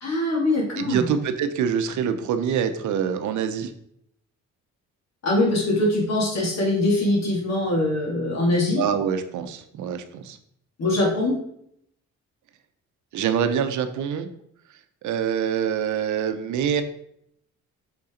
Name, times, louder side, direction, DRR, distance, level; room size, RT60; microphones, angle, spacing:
voice 1, 0.0-1.0 5.2-8.8 10.8-11.4, left 2 dB, 60° left, -2 dB, 2.6 m, -22 dB
voice 2, 0.8-3.7 8.8-10.4 13.1-14.3 15.0-16.8, right 8 dB, 75° right, 9 dB, 0.7 m, -25 dB
6.1 x 4.2 x 3.8 m, 0.71 s
cardioid pair, 90°, 30 cm